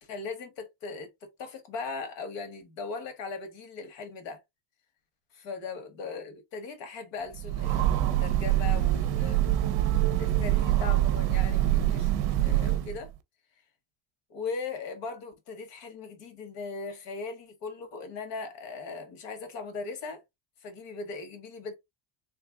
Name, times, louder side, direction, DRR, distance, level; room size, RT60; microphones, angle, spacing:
voice 1, 0.0-4.4 5.3-9.4 10.2-13.1 14.3-20.2 20.6-21.8, left 4 dB, 70° left, 1.5 m, -39 dB
Train, 7.3-13.1, right 13 dB, 55° right, 0.6 m, -25 dB
3.3 x 3.3 x 2.3 m
cardioid pair, 165°, 46 cm